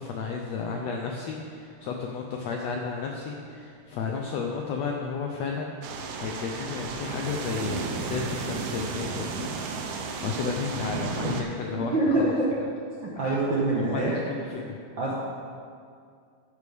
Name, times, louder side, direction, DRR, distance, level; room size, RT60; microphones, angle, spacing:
voice 1, 0.0-5.8 6.2-12.4 13.2-13.4 13.7-14.8, left 5 dB, 80° left, 1 dB, 1.5 m, -33 dB
sound 1, 5.8-11.4, right 4 dB, 85° right, 1.3 m, -33 dB
voice 2, 10.1-10.5 11.7-12.5 13.0-14.1 15.0-15.2, right 2 dB, 60° right, -6 dB, 1.2 m, -26 dB
13.5 x 8.3 x 3.5 m, 2.2 s
omnidirectional pair, 3.8 m